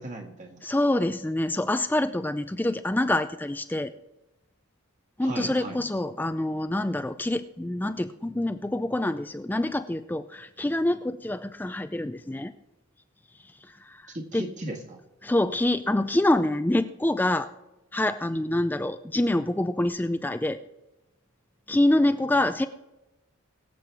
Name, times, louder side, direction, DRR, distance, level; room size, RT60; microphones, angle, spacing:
voice 1, 0.0-0.6 5.2-5.8 14.1-15.0, right 1 dB, 35° right, 2 dB, 1.7 m, -37 dB
voice 2, 0.6-3.9 5.2-12.5 13.7-14.4 15.2-17.5 17.9-20.6 21.7-22.7, left 1 dB, 10° left, 10 dB, 0.3 m, -26 dB
22.5 x 7.6 x 3.5 m, 1.0 s
head